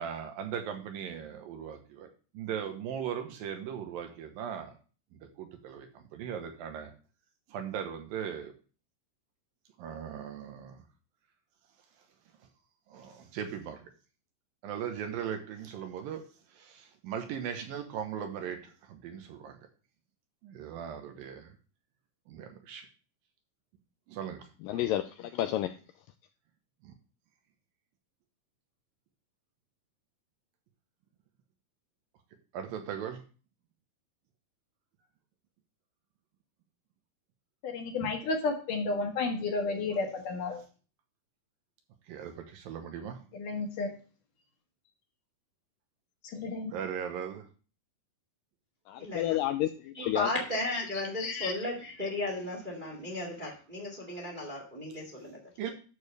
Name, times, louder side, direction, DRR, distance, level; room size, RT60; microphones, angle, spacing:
voice 1, 0.0-2.1 2.3-4.7 5.1-6.9 7.5-8.5 9.8-10.8 12.9-13.8 14.6-19.6 20.4-21.5 22.3-22.9 24.1-24.8 26.8-26.9 32.5-33.2 42.1-43.2 46.7-47.5 55.6-55.7, right 8 dB, 75° right, 5 dB, 2.6 m, -38 dB
voice 2, 24.6-25.7 48.9-50.3 51.2-51.5, left 13 dB, 90° left, 8 dB, 1.9 m, -31 dB
voice 3, 37.6-40.6 43.3-43.9 46.2-46.7, left 3 dB, 65° left, 1 dB, 2.9 m, -32 dB
voice 4, 49.0-49.4 49.9-55.4, left 2 dB, 20° right, -1 dB, 1.3 m, -35 dB
11.0 x 7.0 x 3.3 m, 0.37 s
omnidirectional pair, 4.4 m